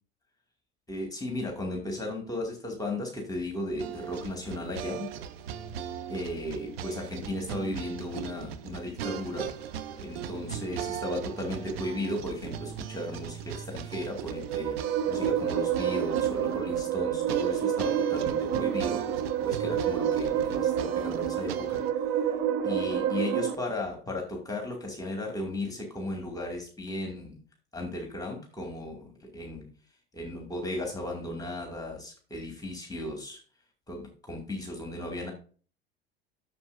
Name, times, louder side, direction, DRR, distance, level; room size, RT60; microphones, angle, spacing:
voice 1, 0.9-5.1 6.1-9.5 10.0-19.0 19.4-21.8 22.6-27.4 27.7-29.7 30.1-33.4 33.9-35.3, left 1 dB, 10° left, 1 dB, 2.4 m, -35 dB
sound 1, 3.8-21.9, right 8 dB, 70° right, 0.9 m, -38 dB
sound 2, 14.1-23.5, right 9 dB, 50° right, 1.3 m, -28 dB
11.0 x 7.2 x 2.7 m, 0.41 s
figure-of-eight pair, 75°, 32 cm